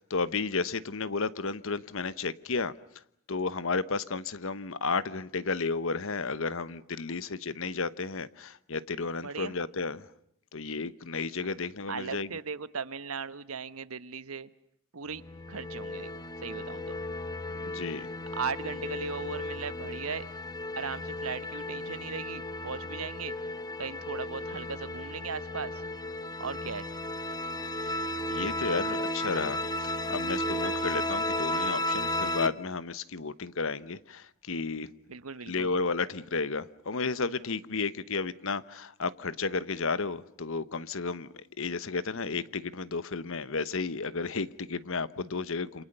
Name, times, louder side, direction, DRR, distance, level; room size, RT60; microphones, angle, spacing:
voice 1, 0.0-2.7 3.3-10.0 10.5-12.3 17.6-18.1 27.8-28.0 28.3-34.9 35.5-45.8, left 4 dB, 65° left, 16 dB, 1.1 m, -33 dB
voice 2, 9.2-9.5 11.9-14.5 14.9-16.1 16.4-17.0 18.3-20.3 20.7-23.3 23.8-25.8 26.4-26.9 35.1-35.7, right 5 dB, 80° right, 14 dB, 1.2 m, -37 dB
sound 1, 15.1-32.5, left 1 dB, 20° left, 1.2 m, -34 dB
Piano, 30.6-32.3, right 6 dB, 60° right, 1.7 m, -51 dB
28.0 x 27.5 x 6.8 m, 0.76 s
head